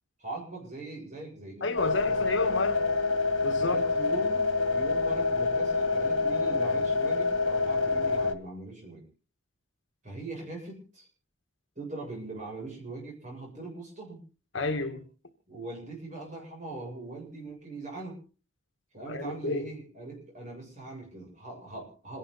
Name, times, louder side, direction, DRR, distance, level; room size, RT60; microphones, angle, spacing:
voice 1, 0.2-2.2 3.6-9.0 10.0-11.1 11.7-14.2 15.5-18.2 18.9-22.2, right 2 dB, 35° right, 7.9 m, -41 dB
voice 2, 1.6-2.9 3.4-3.8 14.5-15.0 19.1-19.7, left 2 dB, 65° left, 1.8 m, -31 dB
sound 1, 1.8-8.3, left 3 dB, 85° left, 1.6 m, -27 dB
27.5 x 11.5 x 4.1 m
head